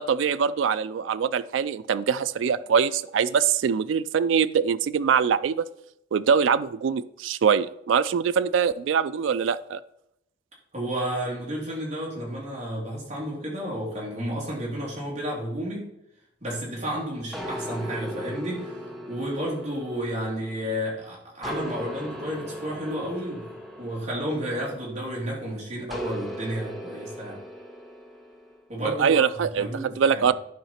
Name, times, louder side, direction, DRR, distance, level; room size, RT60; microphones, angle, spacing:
voice 1, 0.0-5.7 6.1-9.8 28.8-30.3, right 6 dB, 75° right, 13 dB, 0.3 m, -23 dB
voice 2, 10.7-15.9 16.4-23.5 23.8-27.4 28.7-30.3, equal, 35° right, -4 dB, 2.9 m, -32 dB
sound 1, 17.3-20.9 21.4-25.1 25.9-28.6, equal, ahead, 0.9 m, -38 dB
11.0 x 4.8 x 4.3 m, 0.82 s
head